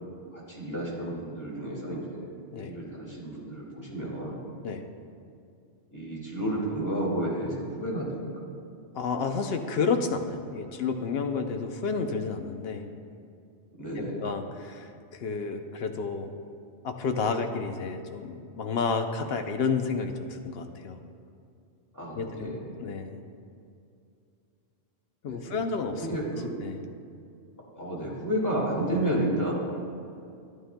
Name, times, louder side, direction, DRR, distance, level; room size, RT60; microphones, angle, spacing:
voice 1, 0.3-2.3 2.6-4.4 5.9-8.5 13.8-14.2 21.9-22.7 25.3-25.5 26.0-26.5 27.8-29.5, right 1 dB, 15° left, -5 dB, 2.0 m, -31 dB
voice 2, 8.9-12.9 14.0-16.3 16.8-21.0 22.1-22.5 22.8-23.2 25.2-26.2 26.6-26.8, left 4 dB, 65° left, 6 dB, 0.8 m, -31 dB
11.5 x 11.0 x 2.2 m, 2.4 s
omnidirectional pair, 1.2 m